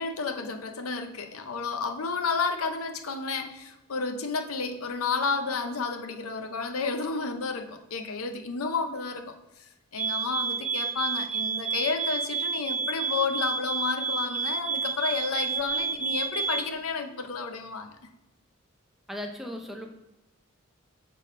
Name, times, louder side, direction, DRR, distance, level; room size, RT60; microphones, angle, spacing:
voice 1, 0.0-18.0, left 4 dB, 80° left, 6 dB, 0.7 m, -31 dB
sound 1, 10.0-16.7, right 5 dB, 35° right, 0.8 m, -30 dB
voice 2, 19.1-19.9, left 1 dB, ahead, 2 dB, 0.6 m, -36 dB
6.6 x 3.8 x 3.7 m, 0.99 s
head